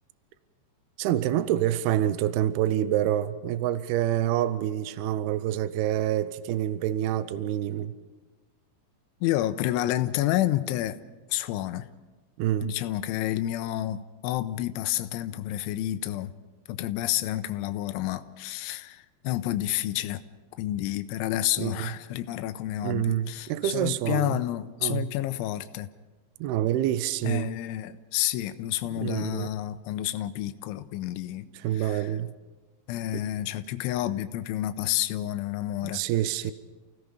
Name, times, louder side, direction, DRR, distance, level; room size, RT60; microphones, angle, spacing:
voice 1, 1.0-8.0 12.4-12.8 21.6-21.9 22.8-24.4 24.8-25.1 26.4-27.5 29.0-29.5 31.6-32.3 35.9-36.5, right 12 dB, 85° right, 2.2 m, -27 dB
voice 2, 9.2-11.0 11.3-11.9 12.6-16.3 16.7-20.2 20.6-25.9 27.2-31.5 31.7-32.1 32.9-36.0, left 14 dB, 85° left, 3.1 m, -29 dB
29.5 x 17.5 x 5.1 m
omnidirectional pair, 5.4 m